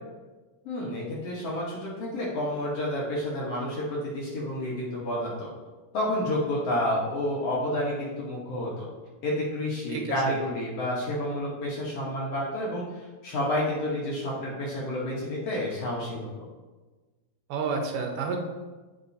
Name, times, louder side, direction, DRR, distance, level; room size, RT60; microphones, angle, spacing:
voice 1, 0.6-5.5 5.9-8.9 9.2-16.4, left 1 dB, 60° left, -5 dB, 1.8 m, -30 dB
voice 2, 9.9-10.4 17.5-18.4, right 5 dB, 80° right, 3 dB, 2.4 m, -30 dB
8.6 x 5.4 x 2.7 m, 1.3 s
omnidirectional pair, 3.8 m